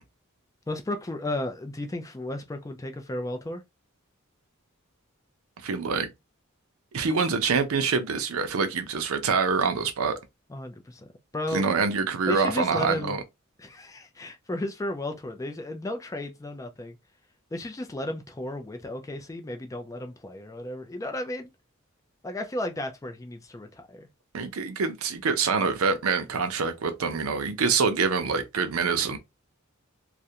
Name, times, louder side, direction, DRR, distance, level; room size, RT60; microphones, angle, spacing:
voice 1, 0.7-3.6 10.5-11.6 12.3-13.2 13.6-17.0 17.5-21.5 22.2-24.1, left 1 dB, 15° left, 0.3 m, -34 dB
voice 2, 5.6-6.1 6.9-10.2 11.5-13.2 24.3-29.2, right 5 dB, 85° right, 0.5 m, -25 dB
2.4 x 2.1 x 2.7 m
head